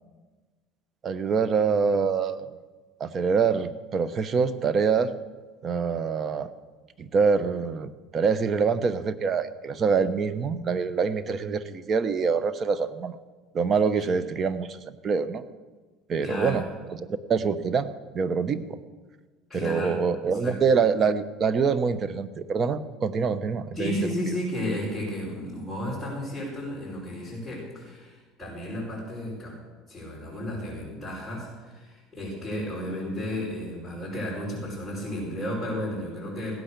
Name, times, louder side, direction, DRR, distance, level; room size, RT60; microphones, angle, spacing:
voice 1, 1.0-2.4 3.0-5.1 5.6-6.5 7.0-13.1 13.5-14.8 15.0-15.4 16.1-16.6 17.3-17.9 18.1-18.8 19.5-23.9 24.3-24.4, right 5 dB, 35° right, 13 dB, 1.0 m, -25 dB
voice 2, 16.2-16.6 19.5-20.0 20.3-20.5 23.7-29.6 29.9-36.6, left 1 dB, 5° left, -9 dB, 6.5 m, -33 dB
17.0 x 10.0 x 6.9 m, 1.3 s
supercardioid pair, 105°, 0 cm